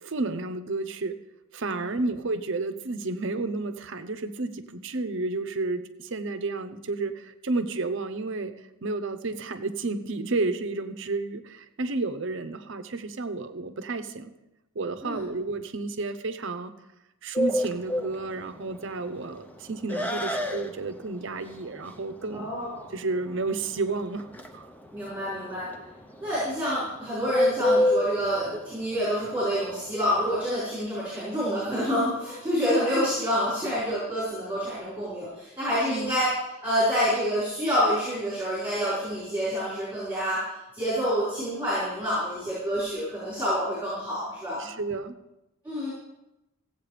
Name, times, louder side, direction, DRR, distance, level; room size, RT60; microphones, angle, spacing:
voice 1, 0.0-1.2 1.5-14.3 14.7-16.7 17.2-22.5 22.9-24.3 24.5-24.7 35.9-36.2 44.6-45.1, right 3 dB, 55° right, 9 dB, 0.7 m, -31 dB
Bird, 17.4-30.3, left 1 dB, 10° left, 0.6 m, -29 dB
voice 2, 22.3-22.8 24.9-25.7 26.2-36.3 36.6-40.4 40.7-44.7 45.6-45.9, equal, 10° right, -10 dB, 4.8 m, -27 dB
15.5 x 8.1 x 5.0 m, 0.95 s
head